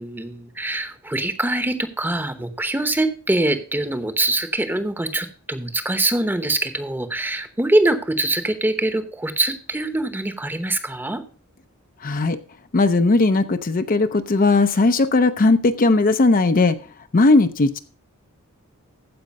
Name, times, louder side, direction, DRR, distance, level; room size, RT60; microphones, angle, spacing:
voice 1, 0.0-11.2, right 2 dB, 10° right, 9 dB, 0.9 m, -23 dB
voice 2, 12.0-12.4 12.7-16.8 17.1-17.8, left 3 dB, 40° left, 9 dB, 0.6 m, -17 dB
14.5 x 5.1 x 5.2 m, 0.39 s
head